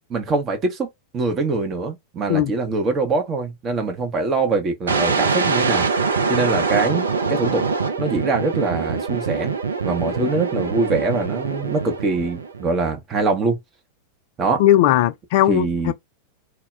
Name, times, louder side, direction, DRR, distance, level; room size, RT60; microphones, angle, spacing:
voice 1, 0.1-0.9 1.1-5.9 6.3-7.7 8.0-9.6 9.8-13.6 14.4-14.6 15.5-15.9, right 3 dB, 25° right, 0.6 m, -23 dB
sound 1, 4.9-12.7, right 5 dB, 75° right, 0.4 m, -23 dB
voice 2, 14.6-15.9, left 13 dB, 50° left, 0.3 m, -17 dB
2.1 x 2.0 x 3.2 m
figure-of-eight pair, 90°, 0 cm